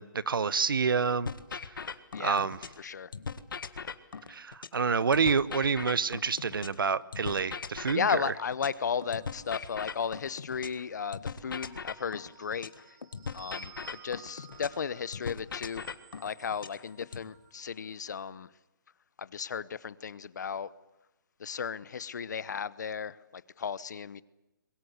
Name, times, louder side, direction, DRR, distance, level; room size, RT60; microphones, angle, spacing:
voice 1, 0.0-1.3 2.2-2.6 4.3-8.3, right 5 dB, 90° right, 17 dB, 1.1 m, -28 dB
sound 1, 1.2-2.8 3.1-6.8 7.1-10.8 11.1-14.8 15.1-17.2, left 5 dB, 75° left, 1.6 m, -40 dB
voice 2, 2.1-2.4 2.8-3.1 7.9-12.7 13.3-15.8 16.2-18.5 19.2-20.7 21.4-24.2, left 6 dB, 55° left, 19 dB, 0.9 m, -34 dB
sound 2, 8.9-10.4 11.3-17.9, right 8 dB, 20° right, 2.2 m, -55 dB
22.5 x 22.0 x 8.1 m, 0.96 s
hypercardioid pair, 170°, 11 cm